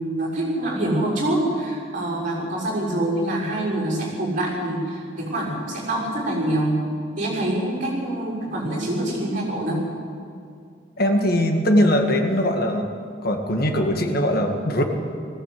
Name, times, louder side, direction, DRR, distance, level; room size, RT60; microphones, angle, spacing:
voice 1, 0.0-6.8 7.2-9.8, right 1 dB, 45° right, -3 dB, 6.6 m, -25 dB
voice 2, 11.0-12.9 13.2-14.8, equal, 55° left, 4 dB, 2.0 m, -20 dB
19.0 x 16.0 x 8.6 m, 2.3 s
head